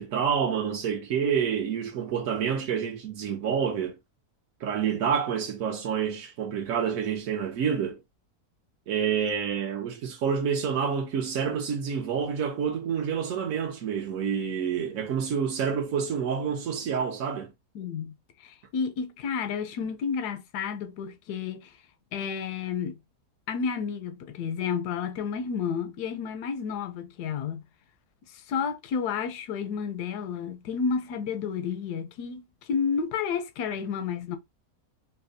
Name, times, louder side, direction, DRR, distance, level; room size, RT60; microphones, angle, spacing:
voice 1, 0.0-4.0 4.6-8.0 8.9-17.5, right 7 dB, 65° right, 1.0 m, -28 dB
voice 2, 17.7-21.8 22.1-23.0 23.5-27.6 28.3-34.4, left 6 dB, 85° left, 1.1 m, -31 dB
4.1 x 2.1 x 2.6 m
omnidirectional pair, 1.6 m